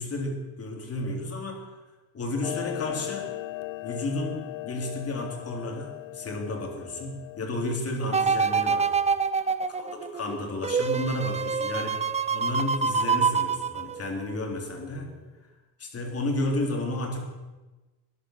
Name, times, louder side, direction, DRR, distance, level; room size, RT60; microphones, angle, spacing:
voice 1, 0.0-1.6 2.1-3.3 3.8-8.9 9.7-12.0 12.3-15.1 15.8-17.2, left 1 dB, 30° left, 2 dB, 3.6 m, -32 dB
Clock, 2.4-7.4, left 21 dB, 85° left, 0.7 m, -38 dB
trem wah, 8.1-14.4 14.8-14.9, right 5 dB, 15° right, 0.6 m, -26 dB
19.0 x 11.5 x 6.6 m, 1.2 s
cardioid pair, 135°, 44 cm